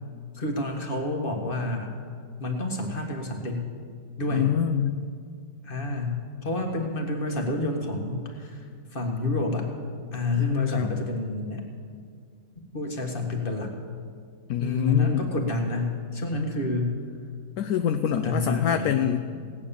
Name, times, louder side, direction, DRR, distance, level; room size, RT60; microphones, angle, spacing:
voice 1, 0.3-1.9 2.4-3.7 4.2-4.5 5.6-9.7 10.1-11.6 12.7-13.7 14.6-17.0 18.2-19.1, left 2 dB, 30° left, 2 dB, 1.8 m, -29 dB
voice 2, 4.3-5.0 10.4-10.9 14.5-15.3 17.6-19.2, left 10 dB, 70° left, 9 dB, 0.9 m, -25 dB
17.5 x 9.7 x 7.0 m, 2.1 s
omnidirectional pair, 1.9 m